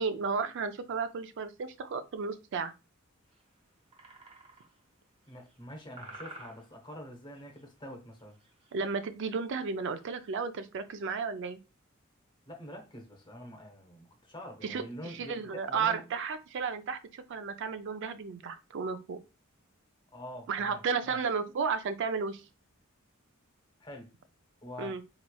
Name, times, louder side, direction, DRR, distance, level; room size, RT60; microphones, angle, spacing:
voice 1, 0.0-2.7 8.7-11.6 14.6-14.8 15.1-19.2 20.5-22.4 24.8-25.0, right 5 dB, 60° right, 0.4 m, -33 dB
sound 1, 3.3-3.4 3.9-4.8 5.2-5.7 6.0-6.9 7.3-7.6 8.1-8.7 9.0-9.1 9.4-9.5 10.0-10.3, right 2 dB, 30° right, 0.9 m, -51 dB
voice 2, 5.3-8.4 12.5-16.0 20.1-21.2 23.8-24.1 24.6-25.0, equal, 25° left, 0.8 m, -46 dB
4.1 x 3.1 x 2.2 m
head